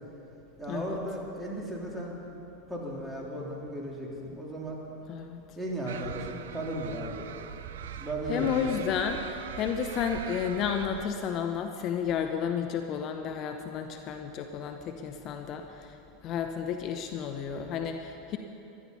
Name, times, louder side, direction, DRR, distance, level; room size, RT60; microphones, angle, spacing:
voice 1, 0.6-2.2 2.7-4.8 5.5-7.3 8.0-8.7, right 1 dB, 10° right, -3 dB, 3.4 m, -35 dB
voice 2, 5.1-5.4 8.3-15.9 16.2-18.4, left 7 dB, 45° left, 6 dB, 0.8 m, -32 dB
sound 1, 5.9-11.1, right 8 dB, 70° right, 0.6 m, -41 dB
16.0 x 12.0 x 5.6 m, 2.9 s
figure-of-eight pair, 85°, 0 cm